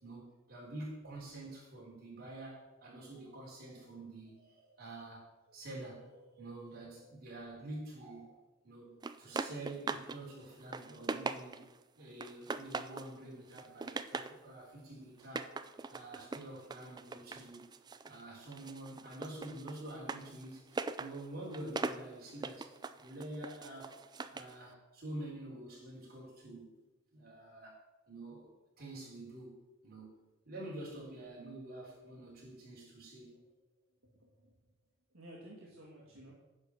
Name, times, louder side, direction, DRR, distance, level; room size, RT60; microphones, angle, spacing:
voice 1, 0.0-8.4 8.6-15.5 15.9-17.7 18.0-24.0 24.3-26.8 27.1-28.5 28.8-29.6 29.8-33.3, right 1 dB, 50° right, -4 dB, 3.9 m, -47 dB
sound 1, 9.0-10.2 10.5-11.8 12.2-13.1 13.5-14.4 15.2-18.2 18.5-24.5, right 4 dB, 20° right, 0.3 m, -41 dB
voice 2, 34.0-34.5 35.1-36.3, right 1 dB, 70° right, -4 dB, 1.8 m, -54 dB
10.5 x 5.0 x 7.0 m, 1.1 s
head